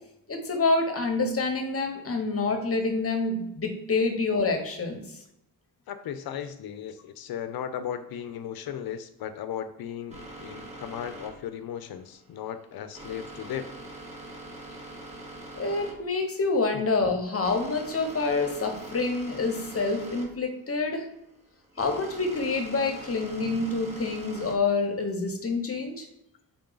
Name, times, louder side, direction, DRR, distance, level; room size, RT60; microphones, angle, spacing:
voice 1, 0.3-5.2 15.5-21.0 21.8-26.1, left 3 dB, 40° left, 4 dB, 0.8 m, -27 dB
voice 2, 5.9-13.8 16.7-16.8, left 9 dB, 70° left, 10 dB, 0.5 m, -36 dB
sound 1, 10.1-25.1, right 1 dB, 20° right, 1.1 m, -44 dB
3.6 x 2.3 x 3.8 m, 0.80 s
cardioid pair, 65°, 37 cm